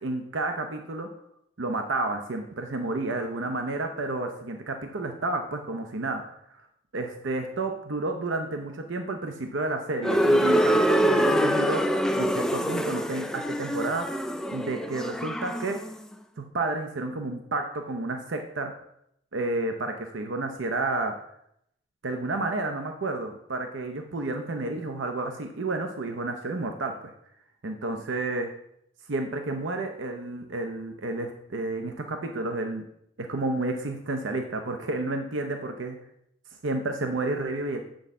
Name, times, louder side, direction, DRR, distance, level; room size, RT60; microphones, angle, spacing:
voice 1, 0.0-1.1 1.6-6.2 6.5-6.6 6.9-11.8 12.2-14.2 14.5-15.8 16.4-18.7 19.3-21.1 22.0-27.1 27.6-28.5 29.1-32.8 33.2-36.0 36.6-37.8, right 2 dB, 80° right, 5 dB, 0.7 m, -31 dB
sound 1, 10.0-15.9, equal, 5° left, 0.3 m, -25 dB
8.0 x 6.3 x 3.7 m, 0.74 s
head